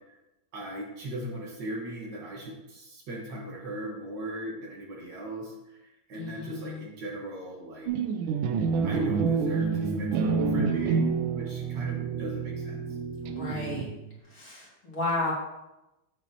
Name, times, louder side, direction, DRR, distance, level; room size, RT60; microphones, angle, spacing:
voice 1, 0.5-7.9 8.8-11.1 11.3-12.8, right 1 dB, 60° right, -1 dB, 1.9 m, -38 dB
voice 2, 6.1-6.8 13.2-13.9 14.2-15.3, left 2 dB, 45° left, -6 dB, 2.6 m, -33 dB
sound 1, 7.9-14.2, right 5 dB, 80° right, 1.3 m, -28 dB
7.9 x 7.3 x 2.8 m, 0.96 s
omnidirectional pair, 2.2 m